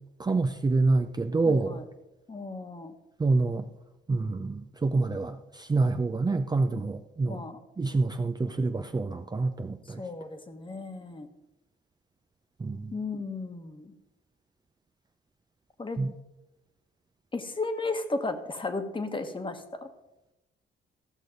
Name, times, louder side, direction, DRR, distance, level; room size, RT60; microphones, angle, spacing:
voice 1, 0.2-1.8 3.2-3.7 4.1-7.4 7.8-10.0 12.6-12.9 16.0-16.1, right 3 dB, 20° right, 7 dB, 0.6 m, -27 dB
voice 2, 1.5-1.8 2.3-2.9 7.2-7.6 9.8-11.3 12.9-13.9 15.8-16.0 17.3-19.9, left 3 dB, 25° left, 7 dB, 1.4 m, -34 dB
15.0 x 6.4 x 5.3 m, 0.94 s
cardioid pair, 90°, 20 cm